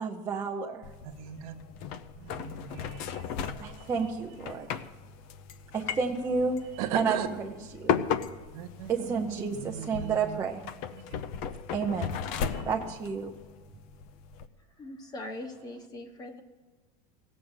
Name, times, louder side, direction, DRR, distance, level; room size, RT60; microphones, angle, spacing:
voice 1, 0.0-0.9 3.6-4.7 5.7-6.6 6.9-8.0 8.9-10.6 11.7-12.2 12.7-13.3, right 5 dB, 15° right, -1 dB, 0.6 m, -31 dB
sound 1, 0.8-14.5, left 7 dB, 40° left, 0.6 m, -36 dB
voice 2, 1.0-1.5 2.2-3.9 4.6-4.8 6.8-7.3 8.5-10.4 11.1-11.2 12.4-12.7, right 10 dB, 65° right, 7 dB, 1.3 m, -38 dB
voice 3, 14.8-16.4, left 1 dB, 20° left, 6 dB, 1.1 m, -41 dB
17.5 x 7.4 x 8.0 m, 1.3 s
supercardioid pair, 170°, 20 cm